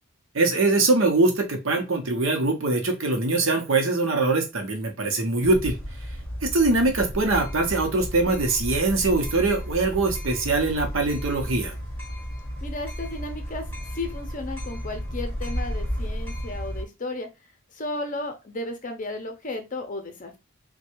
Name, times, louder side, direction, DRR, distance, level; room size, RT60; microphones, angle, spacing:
voice 1, 0.3-5.8 6.4-11.8, right 3 dB, 60° right, 4 dB, 0.9 m, -22 dB
sound 1, 5.4-16.8, equal, 10° left, 0.9 m, -33 dB
voice 2, 12.6-13.6 13.9-17.3 17.7-20.4, left 2 dB, 35° left, 5 dB, 0.7 m, -34 dB
3.2 x 2.3 x 3.0 m, 0.25 s
head